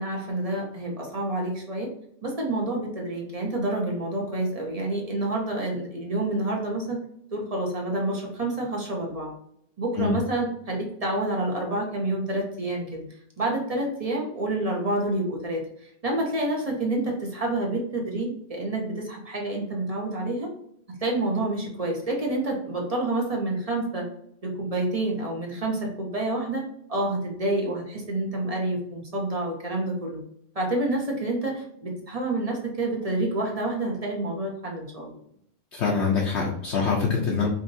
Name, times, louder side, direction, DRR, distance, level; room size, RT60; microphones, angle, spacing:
voice 1, 0.0-1.9 2.2-7.0 7.3-9.3 9.8-13.0 13.4-20.5 20.9-24.0 24.4-26.6 26.9-30.2 30.5-35.2, right 2 dB, 30° right, -1 dB, 1.0 m, -28 dB
voice 2, 35.7-37.5, left 5 dB, 65° left, -2 dB, 1.1 m, -24 dB
5.2 x 2.6 x 2.6 m, 0.71 s
omnidirectional pair, 1.3 m